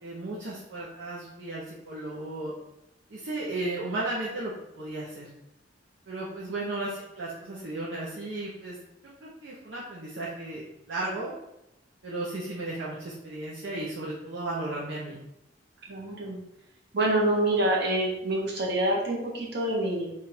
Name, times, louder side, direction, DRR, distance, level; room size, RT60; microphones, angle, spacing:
voice 1, 0.0-2.5 3.1-5.3 6.1-8.8 9.2-11.3 12.0-15.2, right 2 dB, 80° right, -7 dB, 0.9 m, -35 dB
voice 2, 15.9-16.4 16.9-20.1, right 1 dB, 60° right, -4 dB, 1.2 m, -26 dB
3.7 x 2.5 x 4.3 m, 0.87 s
head